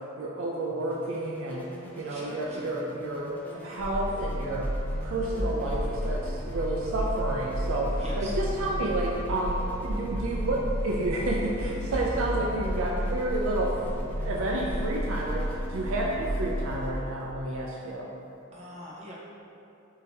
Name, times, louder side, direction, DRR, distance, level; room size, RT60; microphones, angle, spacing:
voice 1, 0.2-1.7 2.0-4.7 5.0-18.1, right 2 dB, 70° right, -2 dB, 0.4 m, -30 dB
sound 1, 0.7-18.4, right 1 dB, 10° left, 0.4 m, -45 dB
voice 2, 2.0-2.7 8.0-8.7 12.2-12.3 18.5-19.1, equal, 35° right, -6 dB, 0.8 m, -43 dB
sound 2, 3.8-16.9, equal, 60° left, 0.6 m, -32 dB
3.8 x 2.7 x 4.0 m, 2.7 s
head